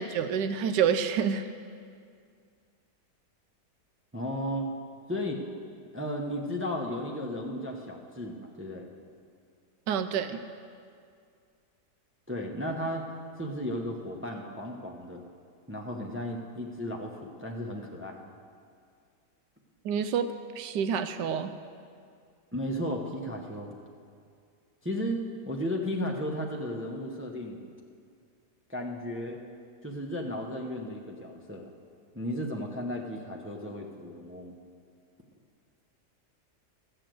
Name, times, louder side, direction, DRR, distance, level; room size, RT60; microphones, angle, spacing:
voice 1, 0.0-1.5 9.9-10.4 19.8-21.5, right 7 dB, 85° right, 10 dB, 1.2 m, -28 dB
voice 2, 4.1-4.7 5.1-5.4 5.9-8.9 12.3-13.0 13.4-15.2 15.7-18.2 22.5-23.7 24.8-27.6 28.7-29.4 29.8-31.7 32.1-34.6, equal, 15° right, 0 dB, 0.5 m, -34 dB
14.0 x 6.7 x 7.6 m, 2.2 s
omnidirectional pair, 1.8 m